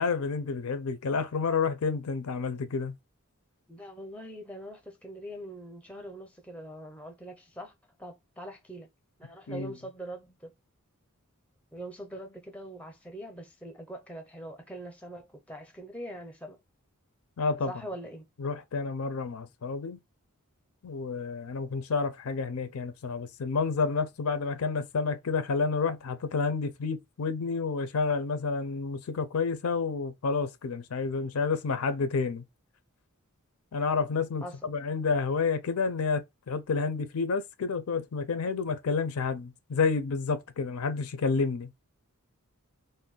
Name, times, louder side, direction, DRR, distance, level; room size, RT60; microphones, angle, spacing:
voice 1, 0.0-2.9 9.5-9.7 17.4-17.7 18.4-20.0 20.8-32.4 33.7-41.7, left 4 dB, 75° left, 0.5 m, -30 dB
voice 2, 3.7-7.7 8.0-8.9 9.2-10.5 11.7-16.6 17.7-18.3 34.4-34.7, right 1 dB, 5° left, 0.5 m, -43 dB
2.5 x 2.2 x 3.6 m
head